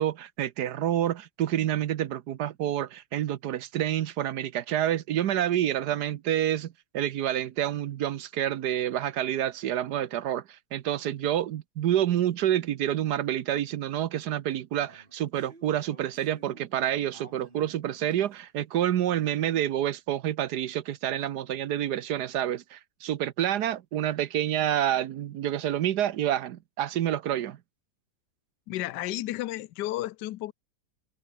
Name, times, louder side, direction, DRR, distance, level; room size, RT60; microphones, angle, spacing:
voice 1, 0.0-27.6, right 11 dB, 70° right, 1.3 m, -28 dB
sound 1, 12.9-13.0 13.3-13.4 14.7-16.8 17.1-18.5, right 3 dB, 25° right, 2.8 m, -54 dB
voice 2, 28.7-30.5, left 15 dB, 70° left, 1.3 m, -32 dB
omnidirectional pair, 2.0 m